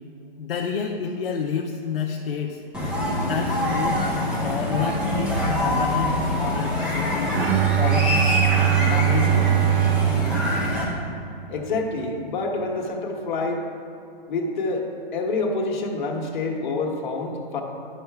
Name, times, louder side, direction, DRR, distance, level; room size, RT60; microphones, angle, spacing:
voice 1, 0.4-2.6 3.1-7.3 7.8-8.2 8.7-9.5, left 7 dB, 70° left, -1 dB, 0.7 m, -30 dB
sound 1, 2.7-10.8, left 1 dB, 5° right, 0.6 m, -24 dB
Bowed string instrument, 7.3-11.5, right 14 dB, 85° right, 0.6 m, -22 dB
voice 2, 11.5-13.7 14.3-14.9 15.1-17.6, left 3 dB, 50° left, 1 dB, 1.3 m, -27 dB
11.0 x 5.8 x 3.4 m, 2.6 s
hypercardioid pair, 155°, 30 cm